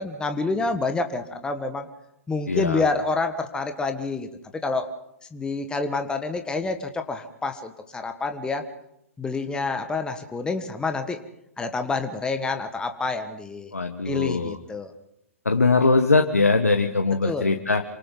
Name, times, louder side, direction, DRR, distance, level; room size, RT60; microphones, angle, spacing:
voice 1, 0.0-1.9 2.3-4.9 5.3-8.6 9.2-11.2 11.6-13.7 14.0-14.9 17.2-17.5, left 3 dB, 10° left, 7 dB, 1.6 m, -28 dB
voice 2, 2.5-2.8 13.7-14.6 15.4-17.8, left 3 dB, 85° left, 5 dB, 1.4 m, -21 dB
28.0 x 25.5 x 3.9 m, 0.79 s
figure-of-eight pair, 110°, 8 cm